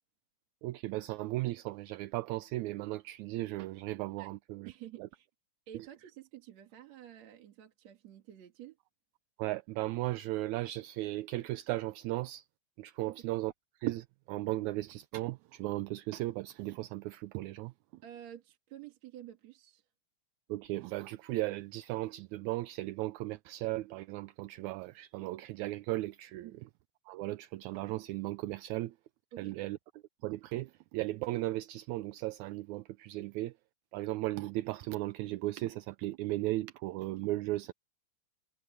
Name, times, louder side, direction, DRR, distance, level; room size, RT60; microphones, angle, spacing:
voice 1, 0.6-4.7 5.0-5.1 5.7-5.9 9.4-12.5 12.8-13.5 13.8-17.7 20.5-26.5 27.1-29.0 29.4-29.8 30.2-33.5 33.9-37.7, right 17 dB, 80° right, 1.9 m, -36 dB
voice 2, 4.6-5.3 5.7-8.8 13.1-13.2 18.0-19.9 26.4-26.6 29.3-29.6, right 11 dB, 65° right, 2.9 m, -50 dB
omnidirectional pair, 3.5 m